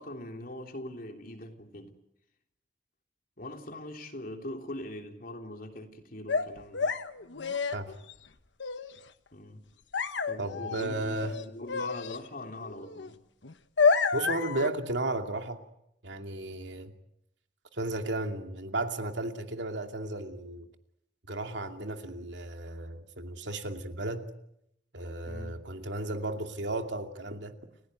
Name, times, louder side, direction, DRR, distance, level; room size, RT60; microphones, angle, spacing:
voice 1, 0.0-1.9 3.4-6.9 9.3-9.6 10.3-13.2 25.3-25.6, left 1 dB, 50° left, 3.4 m, -41 dB
sound 1, 6.3-8.1 8.6-8.9 9.9-10.8 11.1-12.2 12.6-13.1 13.4-14.7, left 5 dB, 90° left, 1.2 m, -29 dB
voice 2, 10.4-11.3 14.1-15.6 16.0-16.9 17.7-20.7 21.3-24.3 24.9-27.5, right 2 dB, 80° right, 2.6 m, -34 dB
30.0 x 17.0 x 9.3 m
head